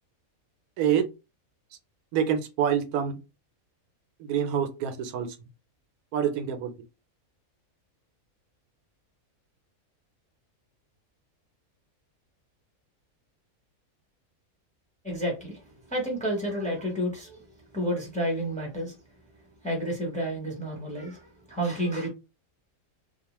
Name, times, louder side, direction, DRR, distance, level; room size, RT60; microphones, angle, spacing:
voice 1, 2.1-3.2 4.2-5.3 6.1-6.7, right 8 dB, 90° right, 1.1 m, -26 dB
voice 2, 15.0-19.0 19.6-22.1, equal, 5° left, 0.7 m, -31 dB
2.7 x 2.2 x 2.9 m
omnidirectional pair, 1.5 m